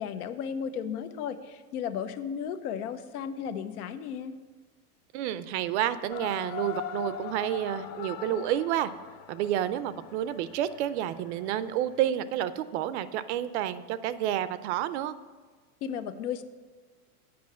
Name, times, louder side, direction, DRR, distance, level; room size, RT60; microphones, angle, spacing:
voice 1, 0.0-4.3 15.8-16.4, left 8 dB, 75° left, 11 dB, 0.9 m, -34 dB
voice 2, 5.1-8.9 9.3-15.1, right 11 dB, 50° right, 14 dB, 0.5 m, -30 dB
sound 1, 6.1-12.1, left 9 dB, 45° left, 0.6 m, -41 dB
8.6 x 5.7 x 7.4 m, 1.5 s
supercardioid pair, 150°, 45 cm